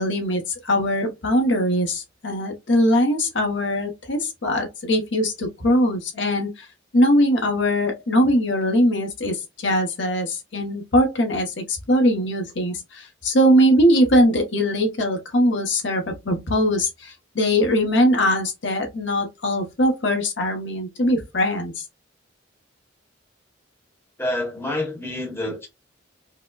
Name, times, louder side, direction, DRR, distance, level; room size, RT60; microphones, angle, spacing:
voice 1, 0.0-6.7 6.9-21.8, equal, 65° left, 0.9 m, -21 dB
voice 2, 24.2-25.7, left 1 dB, 10° left, 1.0 m, -27 dB
4.7 x 2.1 x 2.3 m
head